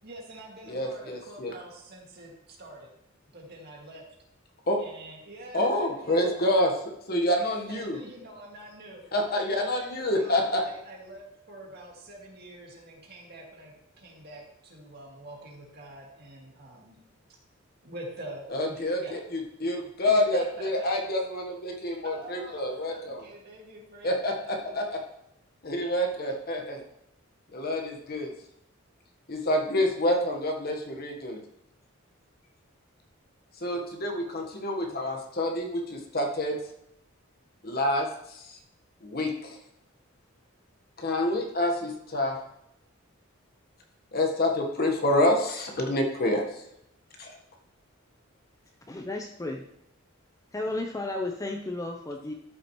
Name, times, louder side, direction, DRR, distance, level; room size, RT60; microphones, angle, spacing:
voice 1, 0.0-2.9 3.3-4.1 4.8-6.7 7.4-9.0 9.5-17.0 17.8-19.2 20.0-20.9 22.0-25.0, right 1 dB, 50° right, -2 dB, 2.1 m, -45 dB
voice 2, 0.7-1.5 4.7-4.8 5.5-6.7 7.1-8.0 9.1-10.6 18.5-23.2 24.0-25.0 25.6-26.8 27.5-28.3 29.3-31.4 33.6-36.6 37.6-38.6 39.0-39.6 41.0-42.4 44.1-46.6 47.2-47.3, left 1 dB, 45° left, 1 dB, 1.3 m, -27 dB
voice 3, 48.9-49.6 50.5-52.3, left 2 dB, 15° left, 2 dB, 0.6 m, -33 dB
13.0 x 6.2 x 3.1 m, 0.78 s
head